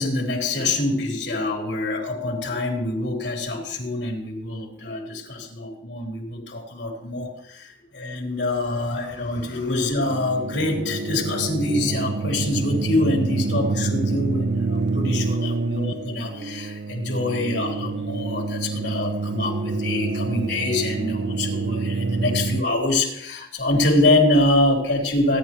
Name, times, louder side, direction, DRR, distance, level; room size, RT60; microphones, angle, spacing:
voice 1, 0.0-25.4, left 2 dB, 75° left, 0 dB, 3.7 m, -25 dB
sound 1, 10.1-22.6, right 3 dB, 70° right, 0.4 m, -27 dB
25.5 x 10.5 x 3.1 m, 0.78 s
head